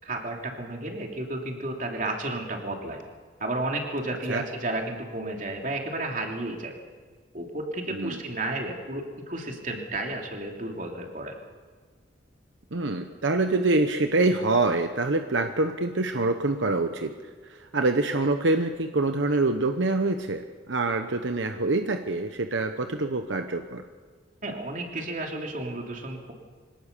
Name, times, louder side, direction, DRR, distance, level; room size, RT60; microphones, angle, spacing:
voice 1, 0.0-3.0 3.4-6.8 7.3-11.4 24.4-26.3, right 2 dB, 45° right, 1 dB, 3.1 m, -32 dB
voice 2, 12.7-17.1 17.5-23.8, right 2 dB, 80° right, 6 dB, 1.1 m, -25 dB
24.5 x 18.0 x 6.9 m, 1.5 s
head